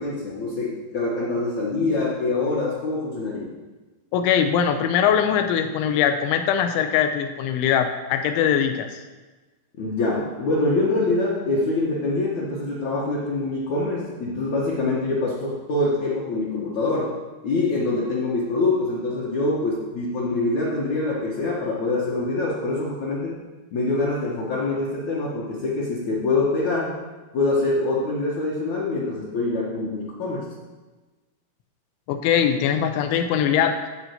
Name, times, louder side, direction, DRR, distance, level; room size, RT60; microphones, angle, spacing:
voice 1, 0.0-3.5 9.8-17.1 17.4-23.4 23.7-27.0 27.3-30.5, left 2 dB, 65° left, -5 dB, 1.7 m, -25 dB
voice 2, 4.1-9.0 32.1-33.8, left 8 dB, 85° left, 6 dB, 3.2 m, -21 dB
11.0 x 4.5 x 7.9 m, 1.2 s
omnidirectional pair, 5.4 m